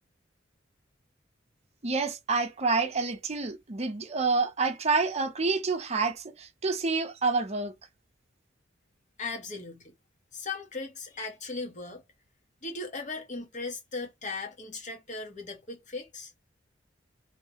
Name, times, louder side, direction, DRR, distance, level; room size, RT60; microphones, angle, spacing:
voice 1, 1.8-7.7, right 4 dB, 35° right, 0.7 m, -28 dB
voice 2, 9.2-9.9 10.3-12.0 12.6-16.3, left 3 dB, 40° left, 1.2 m, -38 dB
3.1 x 3.0 x 2.9 m
head